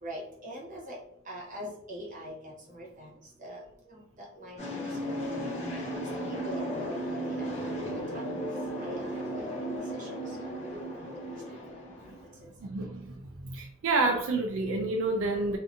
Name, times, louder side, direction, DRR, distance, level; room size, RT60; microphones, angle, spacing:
voice 1, 0.0-1.0 1.2-3.1 3.4-3.6 3.9-5.4 6.3-7.8 8.1-8.4 8.8-9.7 9.9-11.6 12.4-12.5, equal, 40° right, -3 dB, 0.9 m, -44 dB
sound 1, 4.6-12.3, equal, 35° left, 1.0 m, -35 dB
voice 2, 12.6-13.1 13.4-15.6, right 2 dB, 80° right, 2 dB, 0.4 m, -29 dB
2.6 x 2.5 x 2.5 m, 0.78 s
head